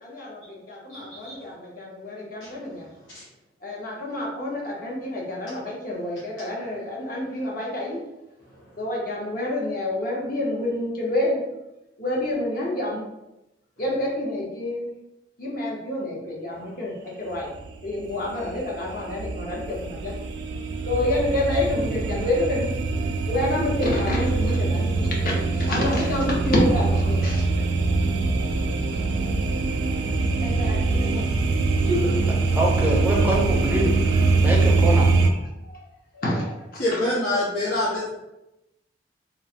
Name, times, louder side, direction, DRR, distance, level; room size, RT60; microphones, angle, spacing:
voice 1, 0.0-2.9 3.6-8.0 8.8-11.4 12.0-13.0 13.8-14.9 15.4-17.5 17.8-22.7 23.3-27.6 28.7-28.8 30.4-31.2 34.8-35.0 35.6-35.8 36.1-37.1, left 1 dB, 50° left, -3 dB, 0.7 m, -28 dB
sound 1, 17.4-35.3, right 3 dB, 70° right, 0.3 m, -23 dB
voice 2, 32.5-34.0 34.3-35.1, right 1 dB, 10° right, -2 dB, 0.5 m, -24 dB
voice 3, 36.8-38.1, left 1 dB, 90° left, -10 dB, 0.9 m, -24 dB
3.0 x 2.0 x 2.7 m, 0.93 s
head